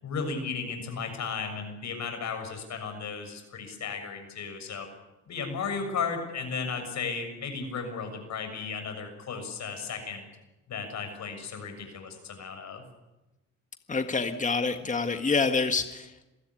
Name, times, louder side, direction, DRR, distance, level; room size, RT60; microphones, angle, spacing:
voice 1, 0.0-4.9 5.3-10.2 10.7-12.8, left 5 dB, 65° left, 6 dB, 6.8 m, -35 dB
voice 2, 13.9-16.3, left 4 dB, 25° left, 7 dB, 1.7 m, -27 dB
27.0 x 16.0 x 9.9 m, 1.0 s
cardioid pair, 90°, 30 cm